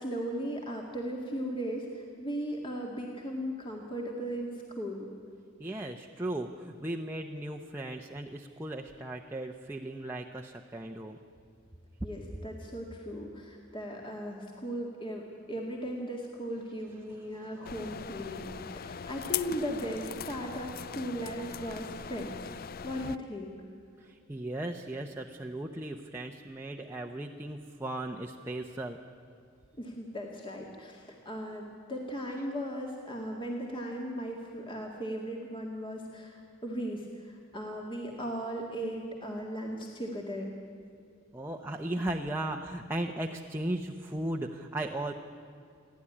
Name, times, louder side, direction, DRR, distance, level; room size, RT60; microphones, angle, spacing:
voice 1, 0.0-5.1 12.0-15.2 15.5-22.5 22.8-23.5 29.8-40.5, equal, 25° left, 0 dB, 2.0 m, -37 dB
voice 2, 5.6-11.2 17.3-17.5 24.0-29.0 41.3-45.1, right 1 dB, 10° right, 1 dB, 0.9 m, -36 dB
sound 1, 17.6-23.2, left 8 dB, 50° left, 0.5 m, -40 dB
29.0 x 11.5 x 9.9 m, 2.5 s
head